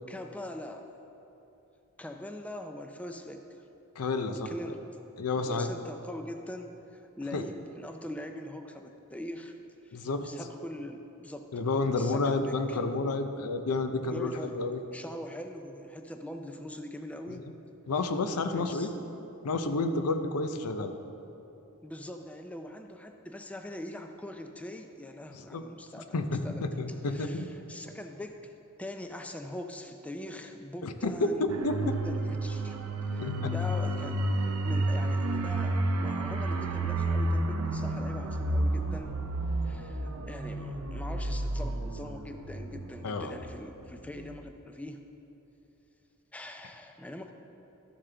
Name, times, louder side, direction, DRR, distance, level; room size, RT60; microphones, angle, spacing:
voice 1, 0.1-0.9 2.0-3.4 4.5-4.9 5.4-9.5 9.8-11.5 12.0-12.8 14.1-17.5 18.5-18.9 21.8-26.7 27.0-28.5 28.8-31.5 31.8-32.8 33.1-39.1 39.6-45.0 46.3-47.3, left 1 dB, 5° left, 5 dB, 0.4 m, -42 dB
voice 2, 4.0-4.5 5.2-5.7 7.3-7.4 9.9-10.2 11.5-14.8 17.9-18.9 19.4-20.9 25.3-25.6 26.1-27.4 30.8-32.0 33.2-33.5 43.0-43.4, left 3 dB, 90° left, 8 dB, 0.6 m, -30 dB
sound 1, 31.5-43.8 44.1-44.3, right 1 dB, 85° right, 0.7 m, -31 dB
13.0 x 7.4 x 3.4 m, 2.9 s
head